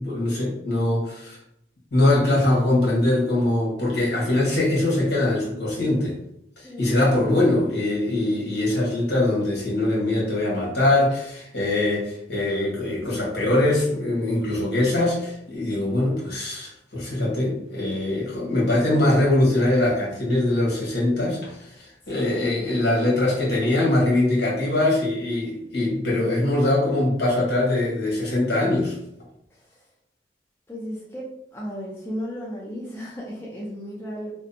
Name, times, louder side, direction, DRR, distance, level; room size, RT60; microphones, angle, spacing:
voice 1, 0.0-1.4 1.9-6.2 6.6-29.0, left 1 dB, 65° left, -5 dB, 1.1 m, -22 dB
voice 2, 6.6-7.0 13.0-13.2 22.1-22.8 29.5-29.8 30.7-31.2 31.5-34.3, equal, 15° left, -5 dB, 0.4 m, -35 dB
2.6 x 2.1 x 2.6 m, 0.77 s
head